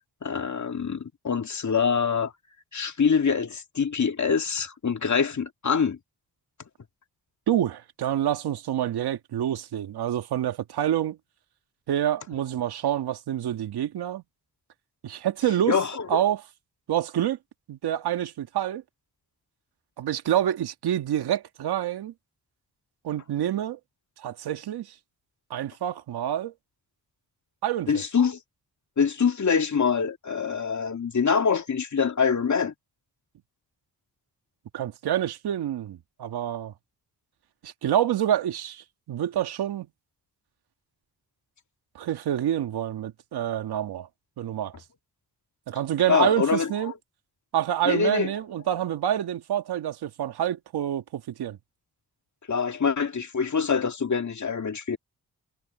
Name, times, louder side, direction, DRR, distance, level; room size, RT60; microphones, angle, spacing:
voice 1, 0.2-2.3 2.7-6.0 15.7-16.2 27.9-28.4 29.0-32.7 46.1-46.7 47.9-48.3 52.5-55.0, left 6 dB, 50° left, 2.3 m, -25 dB
voice 2, 7.5-11.2 11.9-14.2 15.0-15.8 16.1-16.4 16.9-17.4 17.7-18.8 20.0-22.1 23.0-23.8 24.2-24.9 25.5-26.5 27.6-28.0 34.7-36.7 37.6-39.9 42.0-44.1 44.4-44.7 45.7-46.9 47.5-51.6, right 11 dB, 80° right, 1.9 m, -27 dB
supercardioid pair, 50°, 38 cm